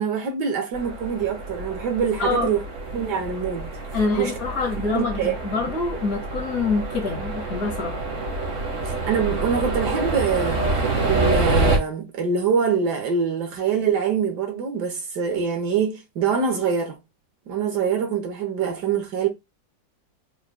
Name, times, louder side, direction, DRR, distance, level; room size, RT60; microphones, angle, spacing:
voice 1, 0.0-2.6 2.9-3.7 4.2-4.3 4.8-5.3 8.8-10.6 11.0-17.0 17.5-19.3, right 6 dB, 65° right, 1.5 m, -24 dB
sound 1, 0.7-11.8, right 2 dB, 45° right, 1.4 m, -27 dB
voice 2, 2.2-2.5 3.9-8.0, left 4 dB, 55° left, 1.4 m, -26 dB
4.9 x 3.1 x 2.2 m
omnidirectional pair, 2.0 m